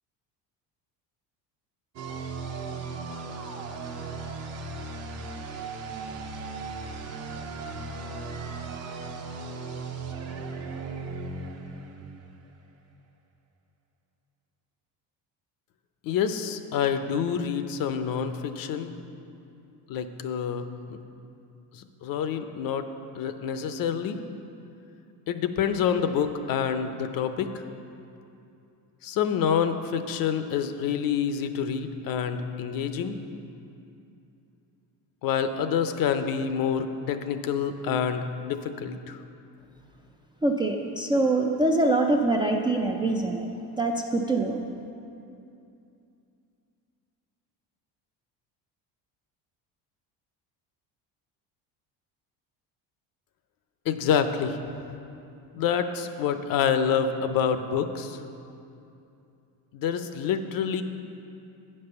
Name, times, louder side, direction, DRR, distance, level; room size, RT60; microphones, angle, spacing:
sound 1, 2.0-12.6, right 4 dB, 40° right, 0.8 m, -37 dB
voice 1, 16.0-18.9 19.9-21.0 21.7-22.9 23.2-24.2 25.3-27.6 29.0-33.2 35.2-39.2 53.9-54.6 55.5-58.2 59.7-60.8, left 7 dB, 60° left, 9 dB, 0.6 m, -27 dB
voice 2, 40.4-43.5 43.8-44.6, right 2 dB, 15° right, 1 dB, 0.3 m, -24 dB
8.7 x 5.4 x 6.7 m, 2.6 s
cardioid pair, 125°, 40 cm